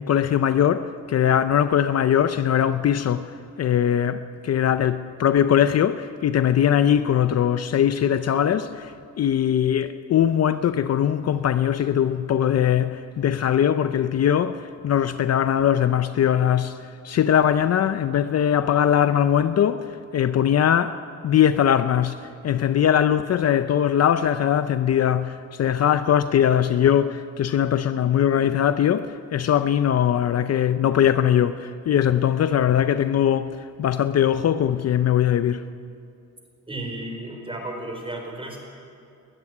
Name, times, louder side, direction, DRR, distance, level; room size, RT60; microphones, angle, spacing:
voice 1, 0.0-35.7, left 9 dB, 50° left, 0.6 m, -21 dB
voice 2, 36.7-38.6, right 1 dB, 15° right, 4.6 m, -33 dB
20.5 x 13.5 x 9.7 m
cardioid pair, 110°, 32 cm